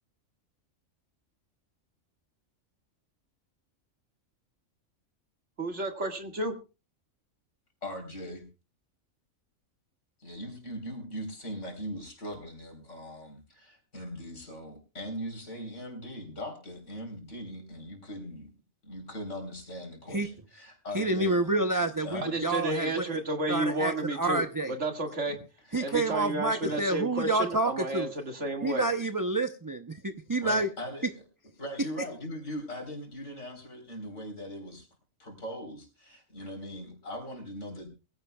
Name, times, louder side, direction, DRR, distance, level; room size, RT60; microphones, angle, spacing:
voice 1, 5.6-6.5 22.2-25.4 25.8-28.9, right 2 dB, 55° right, 4 dB, 2.2 m, -32 dB
voice 2, 7.8-8.5 10.2-18.5 18.8-21.4 22.0-22.3 25.3-25.4 25.8-25.9 26.6-26.8 28.4-28.5 30.4-31.1 31.6-34.9 35.2-37.9, equal, 55° left, 3 dB, 4.3 m, -40 dB
voice 3, 20.9-23.2 23.5-24.7 25.7-28.1 28.6-30.7, right 2 dB, 25° right, 7 dB, 0.5 m, -28 dB
22.5 x 15.5 x 2.3 m, 0.31 s
omnidirectional pair, 1.4 m